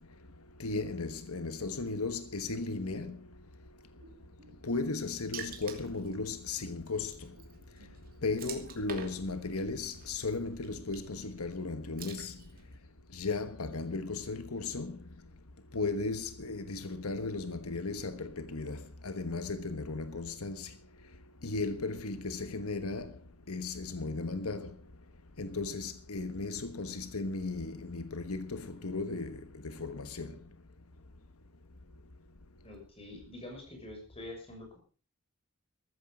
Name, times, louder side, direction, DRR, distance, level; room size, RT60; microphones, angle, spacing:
voice 1, 0.6-3.2 4.6-7.1 8.2-12.3 13.1-15.0 15.7-20.7 21.4-23.1 23.5-24.7 25.4-30.3, left 3 dB, 90° left, 1.3 m, -36 dB
Bowed string instrument, 4.0-8.9, equal, 85° right, 3.8 m, -60 dB
Water / Splash splatter, 5.3-12.8, right 6 dB, 45° right, 2.8 m, -49 dB
voice 2, 32.6-34.8, left 1 dB, 25° left, 6.3 m, -46 dB
14.5 x 14.0 x 5.4 m
head